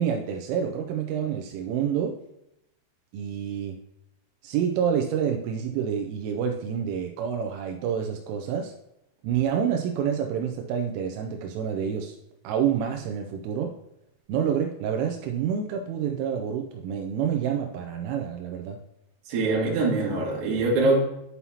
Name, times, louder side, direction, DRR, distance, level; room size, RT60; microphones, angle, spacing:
voice 1, 0.0-2.2 3.1-3.8 4.4-8.7 9.2-12.2 12.4-13.7 14.3-18.8, right 8 dB, 85° right, 3 dB, 3.1 m, -28 dB
voice 2, 19.3-21.0, right 2 dB, 55° right, -3 dB, 3.3 m, -23 dB
11.0 x 5.6 x 2.8 m, 0.84 s
omnidirectional pair, 5.7 m